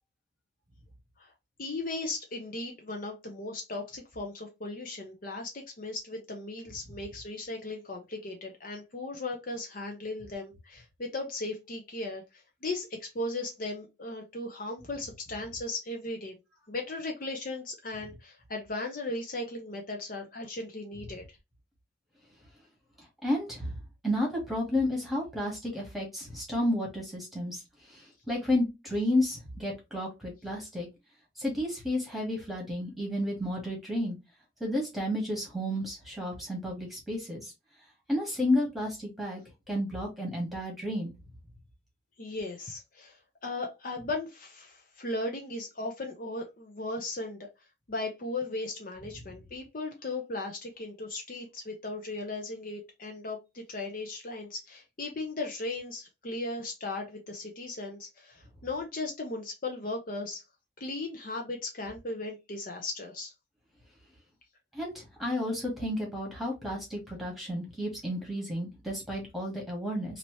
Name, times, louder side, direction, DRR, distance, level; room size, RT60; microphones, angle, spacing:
voice 1, 1.6-12.2 12.6-16.3 16.7-21.2 42.2-43.2 43.4-47.4 47.9-60.4 60.8-63.3, left 2 dB, 45° left, 0.6 m, -37 dB
voice 2, 23.2-23.7 24.0-27.6 27.9-30.9 31.4-34.2 34.6-37.5 38.1-39.4 39.7-41.1 64.7-70.2, left 1 dB, ahead, 1.3 m, -31 dB
3.0 x 2.7 x 3.0 m
head